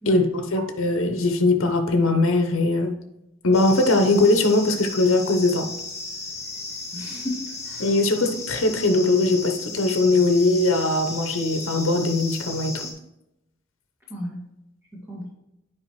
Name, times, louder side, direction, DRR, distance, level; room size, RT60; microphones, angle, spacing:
voice 1, 0.1-2.9 3.4-5.7 7.8-12.9, left 2 dB, 75° left, 5 dB, 0.9 m, -20 dB
sound 1, 3.5-12.9, left 3 dB, 15° left, 1.7 m, -35 dB
voice 2, 6.9-8.2 14.1-14.4 14.9-15.3, left 1 dB, 10° right, -7 dB, 2.0 m, -35 dB
8.5 x 5.0 x 3.1 m, 0.86 s
head